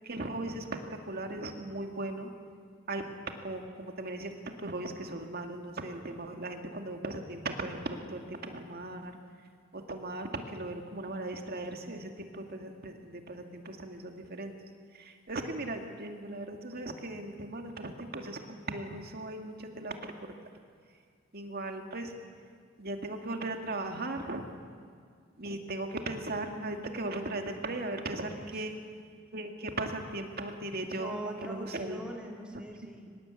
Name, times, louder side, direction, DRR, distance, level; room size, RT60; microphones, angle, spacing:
voice 1, 0.0-0.7 1.1-2.3 2.9-3.0 3.4-4.3 4.6-9.2 9.7-14.5 14.9-20.3 21.3-22.1 22.8-24.4 25.4-28.7 29.3-32.0, right 2 dB, 50° right, 4 dB, 2.3 m, -38 dB
voice 2, 28.4-28.9 30.9-33.1, right 1 dB, 5° right, 0 dB, 3.1 m, -43 dB
24.0 x 20.5 x 8.4 m, 2.1 s
head